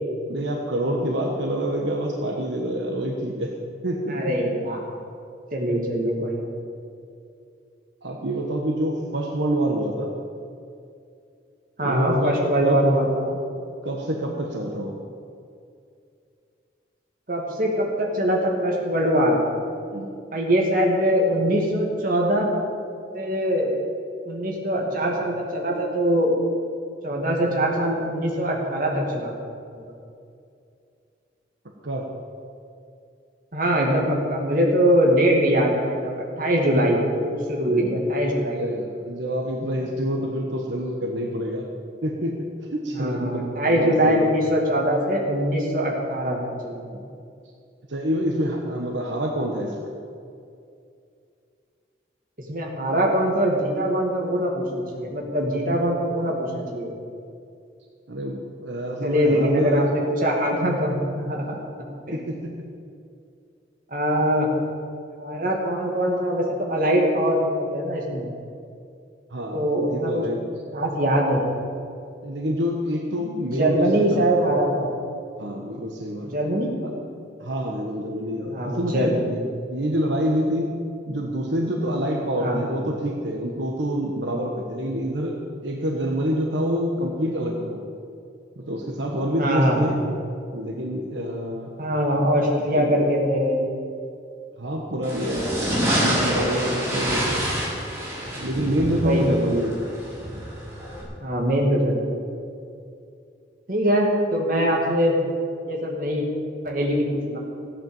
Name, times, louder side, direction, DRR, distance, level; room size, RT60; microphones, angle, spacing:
voice 1, 0.2-3.5 3.8-4.3 8.0-10.1 11.8-12.4 12.6-12.8 13.8-15.0 19.9-20.1 31.8-32.1 37.6-38.0 38.5-41.7 42.0-44.4 47.9-49.9 58.1-59.9 62.1-62.7 69.3-70.4 72.2-74.4 75.4-76.4 76.8-76.9 77.4-79.4 79.7-87.8 88.6-90.0 90.5-91.7 92.7-92.9 94.6-97.5 98.4-99.9, equal, 80° right, 1 dB, 1.3 m, -27 dB
voice 2, 4.1-4.8 5.5-6.5 11.8-13.4 17.3-19.4 20.3-22.5 23.1-23.7 24.2-26.3 27.0-29.3 33.5-38.6 42.9-46.4 46.6-47.0 52.5-56.9 59.0-61.6 62.1-62.2 63.9-64.5 65.2-66.4 66.7-68.3 69.5-70.2 70.7-71.5 73.4-74.9 76.2-76.7 78.5-79.4 82.4-82.6 89.4-89.9 91.8-93.7 99.0-99.4 101.2-102.0 103.7-105.1 105.7-106.2 106.6-107.4, equal, 45° right, -1 dB, 2.5 m, -22 dB
sound 1, 95.0-101.0, equal, 15° right, 3.2 m, -27 dB
15.0 x 8.8 x 7.3 m, 2.5 s
head